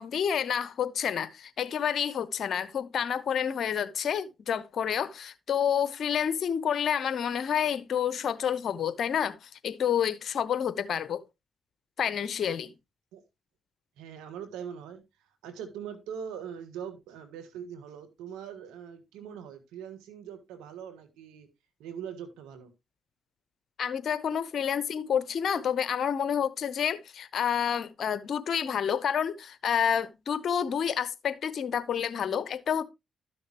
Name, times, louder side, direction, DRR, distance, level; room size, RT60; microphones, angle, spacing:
voice 1, 0.0-11.2 12.0-12.7 23.8-32.8, left 8 dB, 65° left, 0.8 m, -29 dB
voice 2, 14.0-15.0 15.4-21.5 21.8-22.7, right 8 dB, 90° right, 1.5 m, -41 dB
12.5 x 6.4 x 2.9 m
supercardioid pair, 50°, 0 cm